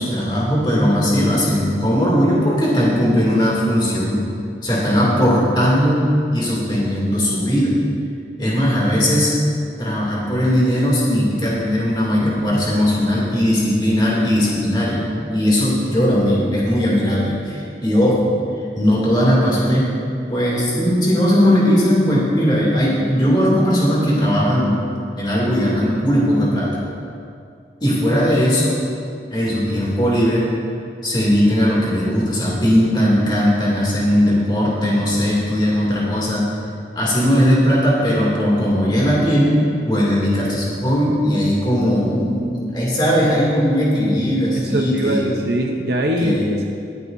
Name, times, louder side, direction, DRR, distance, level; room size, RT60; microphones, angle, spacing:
voice 1, 0.0-4.2 4.6-7.8 8.4-9.3 9.8-15.0 15.3-18.3 18.7-19.9 20.3-24.8 25.2-26.8 27.8-28.8 29.3-30.5 31.0-36.4 37.0-45.2 46.2-46.4, equal, 25° left, -5 dB, 2.5 m, -18 dB
voice 2, 44.6-46.8, right 1 dB, 65° right, 1 dB, 0.8 m, -22 dB
23.5 x 8.2 x 2.6 m, 2.5 s
head